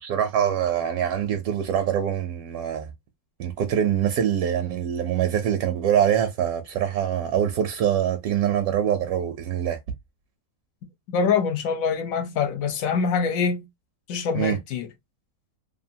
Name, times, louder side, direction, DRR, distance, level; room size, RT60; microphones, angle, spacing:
voice 1, 0.0-2.9 3.4-9.8 14.3-14.6, right 9 dB, 75° right, 1.0 m, -24 dB
voice 2, 11.1-13.7 14.1-14.9, left 6 dB, 70° left, 1.0 m, -24 dB
2.8 x 2.5 x 2.6 m
omnidirectional pair, 1.6 m